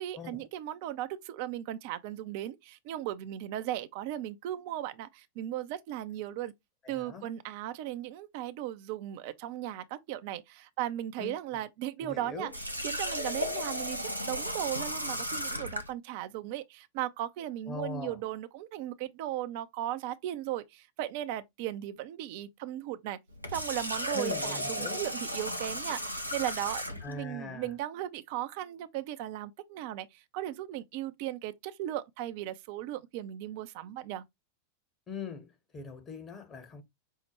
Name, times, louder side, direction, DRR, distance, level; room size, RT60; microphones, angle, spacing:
voice 1, 0.0-6.5 6.9-23.2 23.5-34.2, right 13 dB, 50° right, 0.4 m, -37 dB
voice 2, 6.8-7.2 11.2-11.3 12.0-12.5 17.7-18.2 24.1-25.0 27.0-27.7 35.1-36.8, left 4 dB, 25° left, 0.9 m, -41 dB
Water tap faucet, 12.5-15.9 23.3-27.1, equal, 90° left, 0.7 m, -35 dB
5.4 x 2.1 x 2.9 m
figure-of-eight pair, 90°, 0 cm